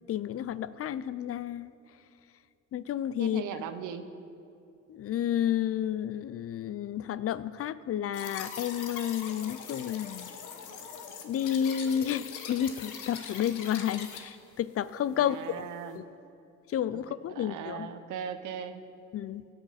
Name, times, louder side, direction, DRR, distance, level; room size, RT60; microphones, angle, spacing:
voice 1, 0.1-1.7 2.7-3.4 4.9-10.3 11.2-15.7 15.9-16.0 16.7-17.9 19.1-19.4, left 10 dB, 50° left, 17 dB, 0.4 m, -31 dB
voice 2, 3.2-4.1 15.1-16.0 16.9-17.0 17.3-18.8, right 8 dB, 80° right, 10 dB, 0.9 m, -38 dB
sound 1, 8.1-14.2, left 6 dB, 85° left, 1.1 m, -42 dB
16.5 x 9.0 x 4.2 m, 2.6 s
cardioid pair, 90°, 30 cm